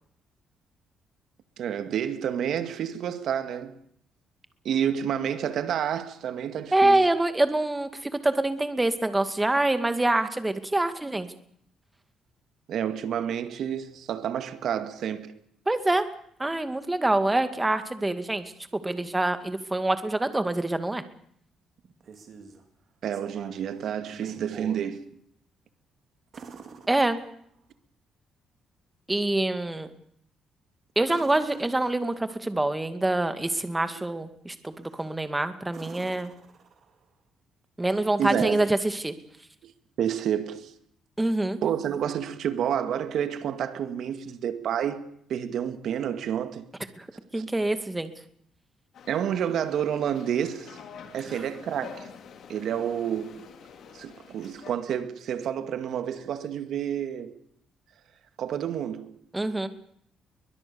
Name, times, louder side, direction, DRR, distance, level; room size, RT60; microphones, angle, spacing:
voice 1, 1.6-3.7 4.6-7.0 12.7-15.3 23.0-25.2 34.0-34.1 38.2-38.6 39.6-39.7 40.0-40.7 41.6-45.0 45.3-46.6 47.4-47.5 49.1-50.8 51.1-52.1 52.5-53.5 53.9-57.4 58.4-59.2, right 9 dB, 70° right, 2.1 m, -29 dB
voice 2, 6.7-11.3 15.7-16.0 16.4-18.4 18.7-21.0 26.9-27.2 29.1-29.9 31.0-36.3 37.8-39.1 41.2-41.6 47.0-47.1 47.3-48.1 59.3-59.7, right 2 dB, 15° right, 2.2 m, -25 dB
sound 1, 21.8-22.6 23.1-23.7 24.1-24.9 26.3-27.6 31.0-32.3 34.8-35.2 35.7-37.1 39.2-39.3, right 5 dB, 50° right, 4.2 m, -46 dB
sound 2, 48.9-54.7, left 7 dB, 65° left, 3.5 m, -47 dB
22.5 x 21.0 x 7.1 m
cardioid pair, 105°, 0 cm